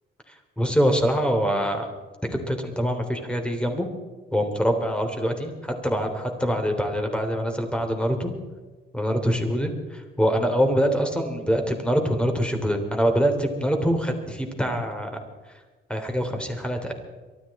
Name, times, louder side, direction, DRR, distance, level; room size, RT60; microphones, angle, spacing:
voice 1, 0.6-1.9 2.3-3.9 4.3-6.1 6.4-8.3 8.9-15.1 15.9-16.9, equal, 5° left, 4 dB, 3.2 m, -24 dB
23.0 x 13.0 x 4.3 m, 1.3 s
cardioid pair, 90°, 20 cm